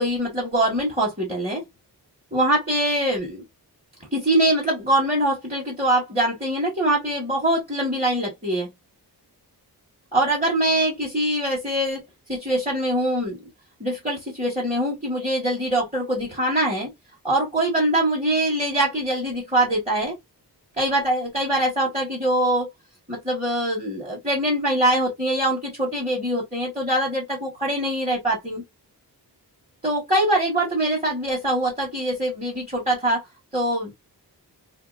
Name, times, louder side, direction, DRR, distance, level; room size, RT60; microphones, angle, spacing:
voice 1, 0.0-1.6 2.3-3.4 4.1-8.7 10.1-12.0 12.3-13.4 13.8-16.9 17.2-20.1 20.8-22.7 23.1-28.6 29.8-33.2 33.5-33.9, right 1 dB, 15° right, 1.4 m, -23 dB
2.8 x 2.8 x 2.3 m
wide cardioid pair, 115°, 40 cm